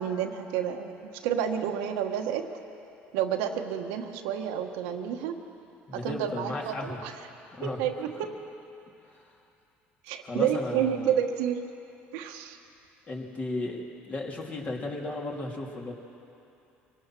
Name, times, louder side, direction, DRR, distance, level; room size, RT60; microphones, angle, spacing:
voice 1, 0.0-2.4 3.1-5.3 5.9-7.1 7.6-8.3 10.0-11.6 12.1-12.6, right 9 dB, 85° right, 4 dB, 1.4 m, -30 dB
voice 2, 5.9-7.0 7.5-7.8 10.2-11.1 13.1-15.9, left 2 dB, 35° left, -1 dB, 3.2 m, -34 dB
24.5 x 17.5 x 6.2 m, 2.8 s
supercardioid pair, 100°, 5 cm